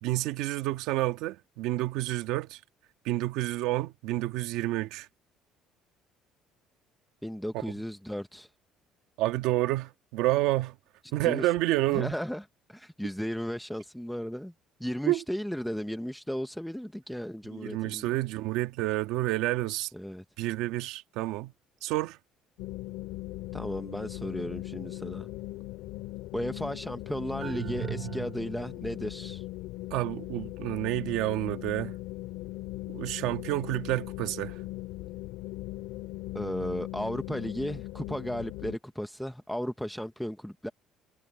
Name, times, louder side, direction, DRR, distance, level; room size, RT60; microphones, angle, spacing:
voice 1, 0.0-2.6 3.0-5.1 9.2-10.8 11.1-12.1 15.1-15.2 17.5-19.9 20.4-21.5 21.8-22.2 29.9-32.0 32.9-34.6, right 17 dB, 85° right, 1.7 m, -29 dB
voice 2, 7.2-8.5 11.2-11.5 11.9-12.4 12.7-14.5 14.8-18.1 19.9-20.2 23.5-25.3 26.3-29.5 36.3-40.7, equal, ahead, 0.6 m, -35 dB
sound 1, 22.6-38.8, left 18 dB, 90° left, 3.4 m, -39 dB
sound 2, 27.4-28.9, right 15 dB, 45° right, 0.7 m, -38 dB
cardioid pair, 165°, 0 cm